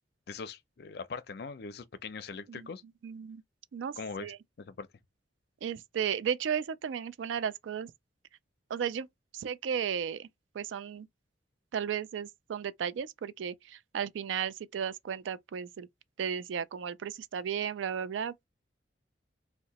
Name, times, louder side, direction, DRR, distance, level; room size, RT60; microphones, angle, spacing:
voice 1, 0.3-2.8 4.0-4.9, left 5 dB, 55° left, 0.5 m, -41 dB
voice 2, 3.0-3.4 3.7-4.4 5.6-7.9 8.7-9.1 9.3-10.3 10.5-11.1 11.7-15.9 16.2-18.5, right 8 dB, 85° right, 0.3 m, -34 dB
2.8 x 2.1 x 4.0 m
head